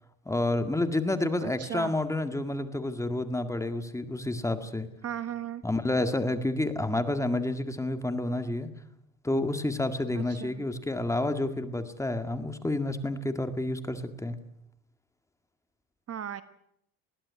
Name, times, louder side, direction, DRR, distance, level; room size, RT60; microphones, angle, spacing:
voice 1, 0.3-4.9 5.6-8.7 9.2-14.4, left 2 dB, 10° left, 8 dB, 2.0 m, -29 dB
voice 2, 1.4-1.9 5.0-5.6 10.1-10.7 16.1-16.4, right 10 dB, 40° right, 12 dB, 1.2 m, -36 dB
21.0 x 16.0 x 9.6 m, 0.76 s
cardioid pair, 130°, 36 cm